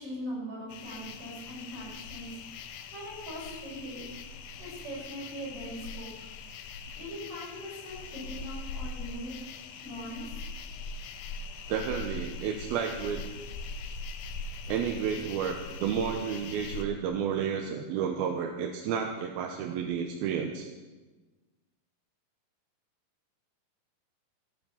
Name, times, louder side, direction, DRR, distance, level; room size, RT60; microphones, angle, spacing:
voice 1, 0.0-2.4 2.6-4.1 4.6-6.1 7.0-9.5 9.8-10.3, equal, 35° right, -5 dB, 7.2 m, -41 dB
sound 1, 0.7-16.8, left 4 dB, 85° left, 2.8 m, -41 dB
voice 2, 11.7-13.3 14.7-20.7, right 7 dB, 80° right, 3 dB, 2.8 m, -31 dB
14.0 x 10.5 x 7.1 m, 1.2 s
omnidirectional pair, 4.4 m